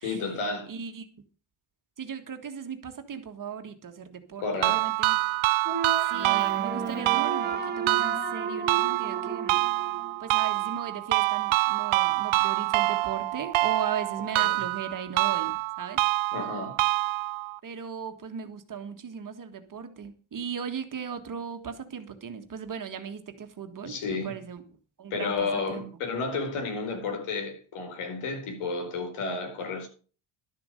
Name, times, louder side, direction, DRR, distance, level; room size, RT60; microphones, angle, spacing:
voice 1, 0.0-0.7 4.4-4.9 14.4-14.6 16.3-16.8 23.8-24.4 25.1-29.9, left 4 dB, 80° left, 4.4 m, -32 dB
voice 2, 0.7-1.1 2.0-5.2 6.1-9.6 10.2-16.0 17.6-24.6 25.0-25.8, right 7 dB, 40° right, 1.7 m, -37 dB
sound 1, 4.6-17.6, right 20 dB, 75° right, 0.6 m, -26 dB
sound 2, 5.6-10.7, right 5 dB, 20° right, 1.5 m, -33 dB
12.0 x 7.1 x 6.5 m
cardioid pair, 130°, 50 cm